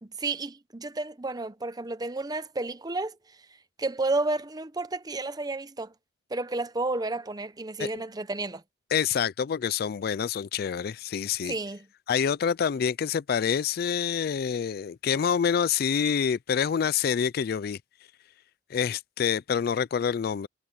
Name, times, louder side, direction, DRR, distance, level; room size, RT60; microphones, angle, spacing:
voice 1, 0.0-3.1 3.8-5.9 6.3-8.6 11.5-11.9, right 2 dB, 20° right, 0.8 m, -31 dB
voice 2, 8.9-11.5 12.1-17.8 18.7-20.5, left 7 dB, 55° left, 0.4 m, -27 dB
head